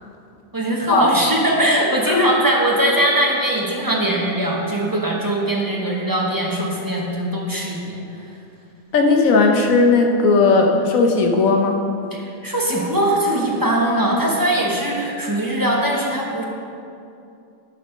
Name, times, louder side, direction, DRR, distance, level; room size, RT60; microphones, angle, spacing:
voice 1, 0.5-8.0 12.1-16.4, right 1 dB, 15° right, -2 dB, 1.0 m, -21 dB
voice 2, 8.9-11.8, left 3 dB, 85° left, 3 dB, 1.3 m, -16 dB
11.5 x 4.1 x 5.4 m, 2.6 s
omnidirectional pair, 1.4 m